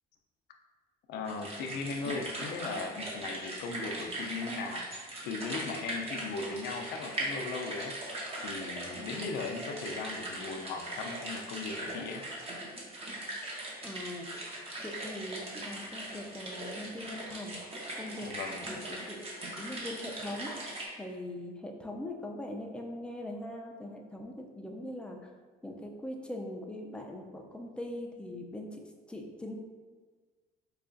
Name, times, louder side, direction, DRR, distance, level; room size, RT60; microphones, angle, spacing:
voice 1, 1.1-4.8 5.3-7.9 8.4-12.3 18.2-18.7, left 4 dB, 75° left, 4 dB, 0.4 m, -38 dB
sound 1, 1.2-20.9, right 1 dB, 35° right, 0.9 m, -40 dB
voice 2, 13.8-14.3 14.8-17.6 17.9-18.3 18.7-20.5 20.9-25.3 25.6-28.8 29.1-29.6, left 1 dB, 5° left, 1 dB, 0.4 m, -41 dB
4.5 x 2.3 x 2.5 m, 1.4 s
cardioid pair, 110°, 17 cm